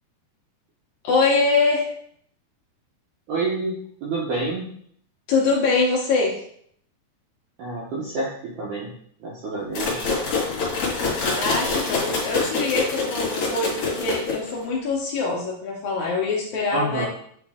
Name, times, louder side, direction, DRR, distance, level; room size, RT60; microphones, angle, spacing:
voice 1, 1.0-1.9 5.3-6.4 11.3-17.1, left 3 dB, 75° left, -3 dB, 1.7 m, -23 dB
voice 2, 3.3-3.7 4.0-4.7 7.6-8.9 9.2-10.1 16.7-17.1, right 2 dB, 80° right, -3 dB, 1.8 m, -28 dB
sound 1, 9.7-14.6, left 3 dB, 50° left, 2.5 m, -25 dB
8.9 x 3.1 x 3.5 m, 0.64 s
omnidirectional pair, 4.8 m